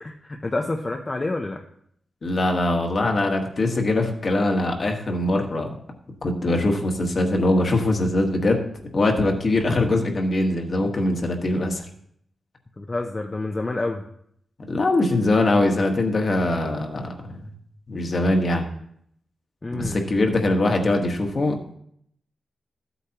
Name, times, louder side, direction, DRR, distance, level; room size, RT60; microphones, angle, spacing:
voice 1, 0.0-1.6 12.8-14.0 19.6-20.1, left 2 dB, 25° left, 2 dB, 0.7 m, -28 dB
voice 2, 2.2-5.7 6.2-8.6 8.9-11.9 14.7-17.5 17.9-18.6 19.7-21.5, left 2 dB, 40° left, 3 dB, 1.4 m, -22 dB
14.5 x 8.2 x 2.9 m, 0.69 s
wide cardioid pair, 145°, 0 cm